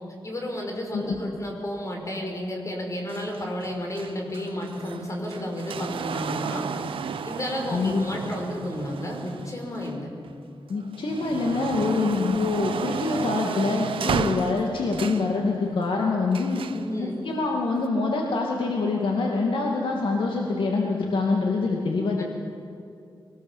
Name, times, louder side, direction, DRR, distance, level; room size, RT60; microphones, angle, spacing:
voice 1, 0.2-6.7 7.2-10.1 16.7-17.1, left 1 dB, 35° left, 1 dB, 5.3 m, -32 dB
sound 1, 3.1-10.3 10.8-15.3 16.3-16.9 17.8-17.9, right 6 dB, 90° right, 1.0 m, -33 dB
voice 2, 7.7-8.0 10.7-16.6 17.0-22.2, left 3 dB, 75° left, 0 dB, 2.4 m, -25 dB
23.5 x 19.5 x 7.5 m, 2.6 s
wide cardioid pair, 95°, 9 cm